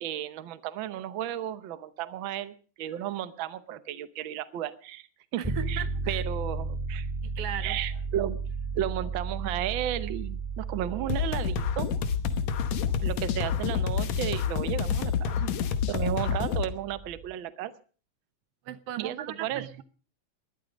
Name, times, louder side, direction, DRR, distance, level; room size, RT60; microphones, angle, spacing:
voice 1, 0.0-5.1 5.3-5.4 5.7-7.1 7.6-8.4 8.7-11.9 13.0-15.5 15.9-17.7 19.0-19.6, right 11 dB, 90° right, 1.0 m, -33 dB
sound 1, 5.4-17.3, right 4 dB, 5° right, 1.6 m, -35 dB
voice 2, 5.4-6.2 7.2-7.8 15.9-16.0 18.6-19.8, right 10 dB, 65° right, 1.6 m, -38 dB
sound 2, 11.1-16.7, left 7 dB, 70° left, 2.3 m, -28 dB
21.0 x 12.0 x 5.2 m
omnidirectional pair, 3.5 m